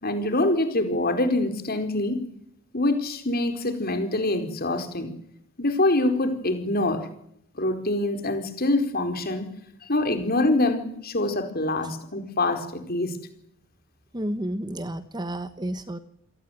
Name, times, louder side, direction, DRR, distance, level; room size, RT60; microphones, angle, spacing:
voice 1, 0.0-2.2 2.7-5.1 5.6-7.1 7.5-9.5 9.8-13.1, left 2 dB, 45° left, 7 dB, 4.5 m, -25 dB
voice 2, 14.1-16.0, right 1 dB, 20° right, 12 dB, 1.3 m, -31 dB
29.0 x 18.5 x 9.4 m, 0.74 s
head